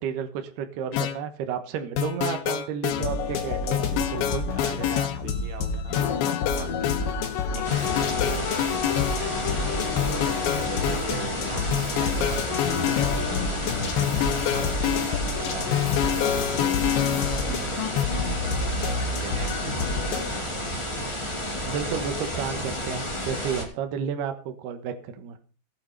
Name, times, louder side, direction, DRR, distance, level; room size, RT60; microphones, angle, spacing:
voice 1, 0.0-4.5 21.6-25.4, right 8 dB, 65° right, 7 dB, 3.0 m, -32 dB
sound 1, 0.9-1.2 2.0-3.0 3.7-5.2 6.0-7.0 7.7-9.2 10.0-11.0 11.7-13.3 14.0-15.2 15.7-17.6 18.0-18.1, left 11 dB, 75° left, 3.4 m, -27 dB
sound 2, 2.9-20.4, left 5 dB, 55° left, 2.8 m, -29 dB
voice 2, 4.5-17.9 19.0-20.5, right 8 dB, 85° right, 5 dB, 4.6 m, -42 dB
sound 3, 7.6-23.6, equal, 15° left, 0.9 m, -31 dB
16.0 x 9.2 x 5.4 m, 0.37 s
omnidirectional pair, 5.6 m